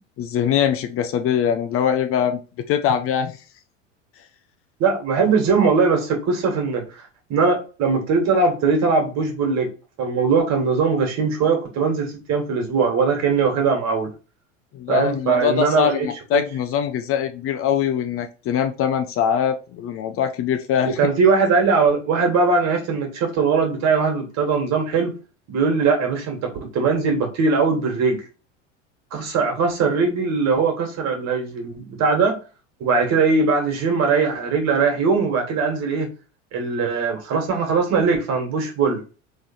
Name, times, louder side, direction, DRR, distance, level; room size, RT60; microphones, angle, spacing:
voice 1, 0.2-3.4 14.7-21.0, left 8 dB, 35° left, 0.7 m, -22 dB
voice 2, 4.8-9.7 10.0-14.1 14.9-16.4 20.8-25.2 25.5-28.3 29.1-32.4 32.8-36.1 36.5-39.0, right 4 dB, 45° right, 1.9 m, -20 dB
3.7 x 3.4 x 4.3 m
hypercardioid pair, 80°, 38 cm